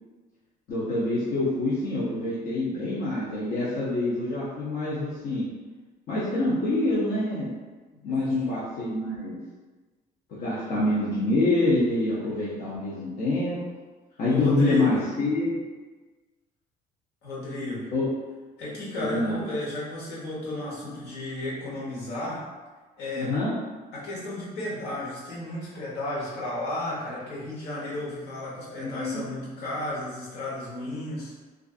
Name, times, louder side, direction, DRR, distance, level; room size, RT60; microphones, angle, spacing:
voice 1, 0.7-5.5 6.1-7.5 8.0-9.4 10.3-13.6 14.2-15.6 17.9-18.0 18.9-19.4 23.1-23.5 28.6-29.2, left 2 dB, 65° left, -9 dB, 0.7 m, -26 dB
voice 2, 7.9-8.4 14.3-14.9 17.2-17.9 18.6-22.4 23.0-23.3 23.9-31.3, left 1 dB, 80° left, -7 dB, 1.1 m, -33 dB
2.5 x 2.4 x 2.4 m, 1.3 s
cardioid pair, 110°, 17 cm